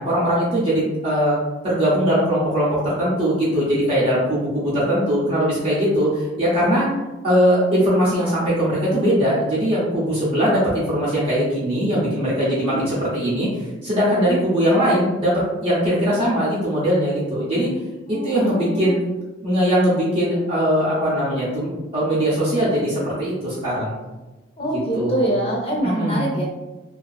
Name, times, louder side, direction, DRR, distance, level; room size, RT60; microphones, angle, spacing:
voice 1, 0.0-1.4 1.6-6.9 7.2-13.5 13.8-17.7 18.1-19.0 19.4-24.0 24.7-25.2 25.8-26.3, equal, 30° right, -8 dB, 0.6 m, -20 dB
voice 2, 12.4-12.8 14.1-14.4 18.1-18.9 24.6-26.4, right 1 dB, 30° left, -3 dB, 0.6 m, -25 dB
2.6 x 2.3 x 2.3 m, 1.1 s
head